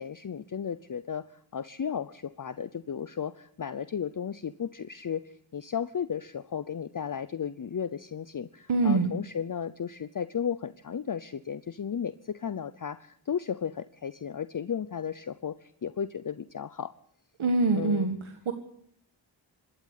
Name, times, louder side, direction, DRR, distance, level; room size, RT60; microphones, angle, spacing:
voice 1, 0.0-16.9 17.7-18.1, left 7 dB, 40° left, 14 dB, 0.7 m, -34 dB
voice 2, 8.7-9.1 17.4-18.5, right 3 dB, 80° right, 5 dB, 1.8 m, -25 dB
25.5 x 12.5 x 8.3 m, 0.67 s
wide cardioid pair, 70°, 47 cm